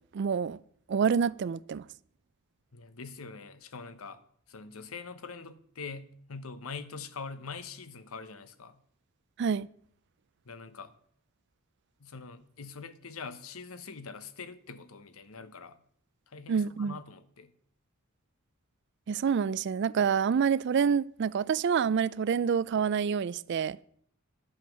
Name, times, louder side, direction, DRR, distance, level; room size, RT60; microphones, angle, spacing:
voice 1, 0.1-0.6 0.9-1.8 9.4-9.7 16.5-17.0 19.1-23.8, right 6 dB, 55° right, 0.3 m, -27 dB
voice 2, 2.7-4.2 4.5-8.8 10.5-10.9 12.0-15.8 16.3-17.5, left 4 dB, 80° left, 0.9 m, -43 dB
11.0 x 7.2 x 6.3 m
head